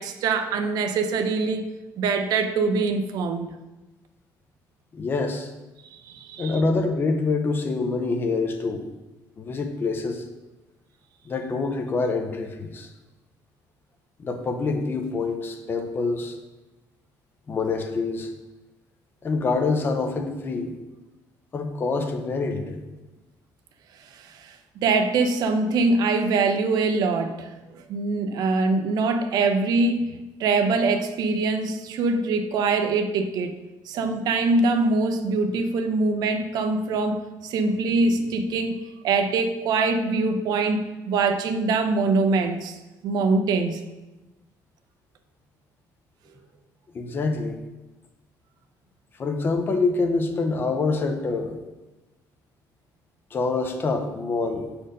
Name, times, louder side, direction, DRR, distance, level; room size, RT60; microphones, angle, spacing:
voice 1, 0.0-1.7 2.0-3.6 5.9-6.6 24.2-24.6 24.8-33.6 33.9-43.8, right 3 dB, 65° right, 7 dB, 0.7 m, -24 dB
voice 2, 4.9-5.5 6.4-8.8 9.4-10.2 11.2-12.9 14.2-16.4 17.5-18.3 19.2-20.7 21.5-22.8 46.9-47.6 49.2-51.6 53.3-54.7, left 3 dB, 30° left, 5 dB, 0.7 m, -26 dB
6.4 x 4.4 x 5.2 m, 1.1 s
cardioid pair, 145°, 7 cm